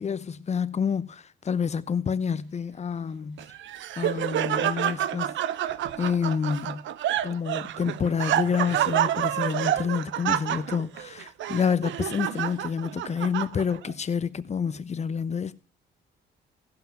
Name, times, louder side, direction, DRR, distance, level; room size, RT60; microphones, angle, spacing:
voice 1, 0.0-3.4 4.0-5.3 6.0-6.8 7.2-15.5, left 6 dB, 35° left, 0.7 m, -28 dB
Laughter, 3.4-13.9, right 11 dB, 70° right, 0.6 m, -28 dB
15.5 x 5.9 x 5.7 m
cardioid pair, 90°, 20 cm